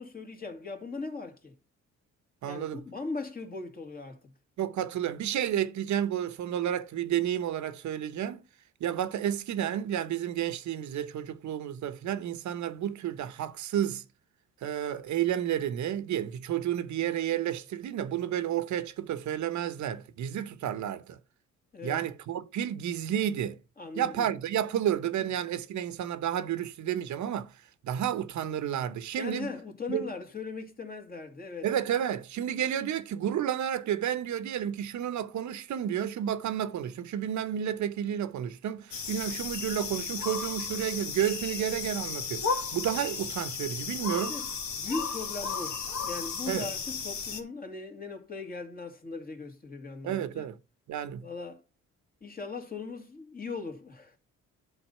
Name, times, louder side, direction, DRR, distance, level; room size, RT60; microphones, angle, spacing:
voice 1, 0.0-1.5 2.4-4.2 21.7-22.0 23.8-24.3 25.2-25.3 29.1-31.7 44.1-44.5 44.8-45.8 46.0-50.5 51.2-51.6 52.2-54.2, left 4 dB, 30° left, 2.4 m, -39 dB
voice 2, 2.4-2.8 4.6-8.4 8.8-14.0 14.6-21.2 21.8-23.6 24.0-27.5 27.8-29.5 29.9-30.1 31.6-44.4 46.5-46.7 50.0-50.6 50.9-51.3, right 10 dB, 70° right, 0.9 m, -31 dB
sound 1, 38.9-47.4, left 5 dB, 70° left, 1.9 m, -34 dB
10.5 x 4.1 x 5.5 m
cardioid pair, 90°, 30 cm